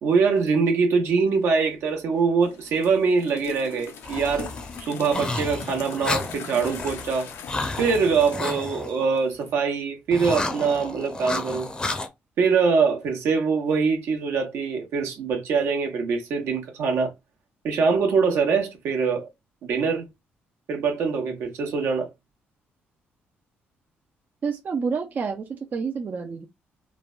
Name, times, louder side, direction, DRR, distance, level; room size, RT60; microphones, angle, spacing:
voice 1, 0.0-4.5 4.8-7.3 7.7-11.7 12.4-17.1 17.6-19.3 19.6-20.1 20.7-22.1, right 5 dB, 75° right, 0.9 m, -23 dB
sound 1, 2.4-9.5, left 7 dB, 80° left, 0.5 m, -41 dB
sound 2, 4.0-9.0 10.1-12.1, left 2 dB, 20° left, 0.6 m, -31 dB
voice 2, 24.4-26.5, right 5 dB, 45° right, 0.4 m, -29 dB
3.2 x 2.1 x 2.3 m
cardioid pair, 105°, 4 cm